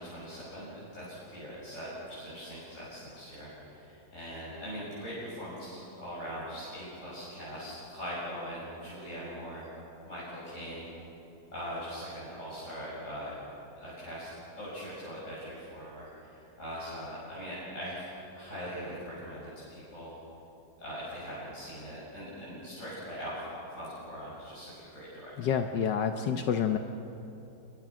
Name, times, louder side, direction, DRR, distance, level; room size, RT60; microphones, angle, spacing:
voice 1, 0.0-9.7 10.1-10.9 11.5-13.4 13.8-20.2 20.8-25.5, equal, 40° left, -9 dB, 7.2 m, -41 dB
voice 2, 25.4-26.8, left 7 dB, 75° left, 7 dB, 1.5 m, -28 dB
29.0 x 22.0 x 6.1 m, 2.9 s
omnidirectional pair, 1.9 m